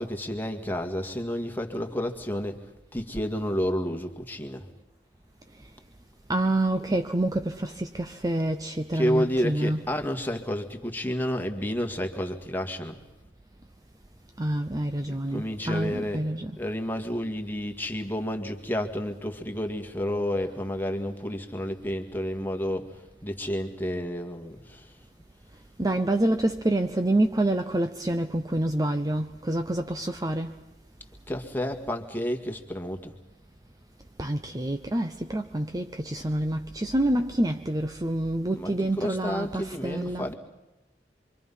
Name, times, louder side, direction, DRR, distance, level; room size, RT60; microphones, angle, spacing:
voice 1, 0.0-2.6 2.9-4.7 8.9-13.0 15.1-16.3 16.6-25.0 31.3-33.2 38.6-40.3, equal, 10° left, 1.9 m, -30 dB
voice 2, 6.3-9.8 14.4-16.5 25.8-30.5 34.2-40.3, right 1 dB, 20° right, 0.7 m, -27 dB
27.0 x 24.5 x 5.6 m
head